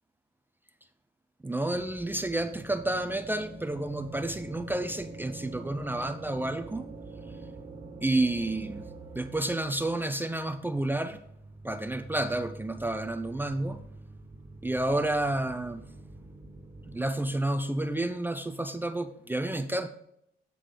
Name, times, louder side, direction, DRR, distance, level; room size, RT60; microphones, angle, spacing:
voice 1, 1.4-6.9 8.0-8.8 9.1-11.2 11.6-13.8 14.6-15.8 16.9-19.9, right 1 dB, 10° right, 9 dB, 0.5 m, -30 dB
sound 1, 1.7-17.0, right 2 dB, 35° right, 1.8 m, -45 dB
8.4 x 6.3 x 3.9 m, 0.73 s
cardioid pair, 90°, 20 cm